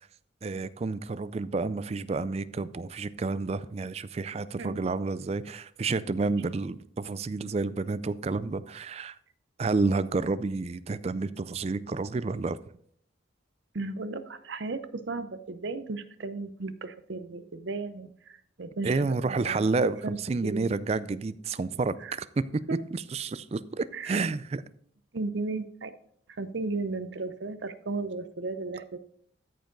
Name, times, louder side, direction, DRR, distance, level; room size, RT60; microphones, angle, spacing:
voice 1, 0.4-9.2 9.6-12.6 18.8-22.6 22.9-24.6, right 3 dB, 30° right, 15 dB, 0.3 m, -30 dB
voice 2, 4.6-5.1 13.7-19.7 20.0-20.7 22.0-22.2 22.7-22.8 23.9-24.2 25.1-25.9 26.3-29.0, right 3 dB, 70° right, 12 dB, 0.7 m, -35 dB
13.5 x 5.2 x 3.9 m, 0.66 s
head